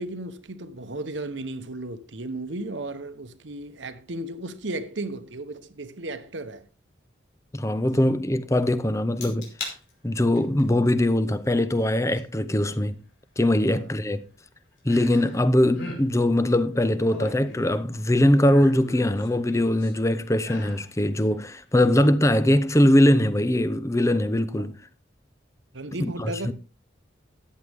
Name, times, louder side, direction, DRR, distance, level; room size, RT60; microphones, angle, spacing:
voice 1, 0.0-6.6 13.7-13.8 24.6-24.7 25.7-26.5, right 2 dB, 75° right, 1.1 m, -35 dB
voice 2, 7.5-9.5 10.0-13.0 13.4-14.2 14.8-24.8 26.0-26.5, left 1 dB, 15° left, 0.7 m, -21 dB
sound 1, 9.2-9.8 10.2-10.6 12.2-12.3 14.9-15.4 15.7-16.0 16.8-17.9 18.4-19.9 20.4-20.9 21.3-21.4, left 2 dB, 90° left, 5.2 m, -38 dB
14.0 x 9.4 x 3.5 m
head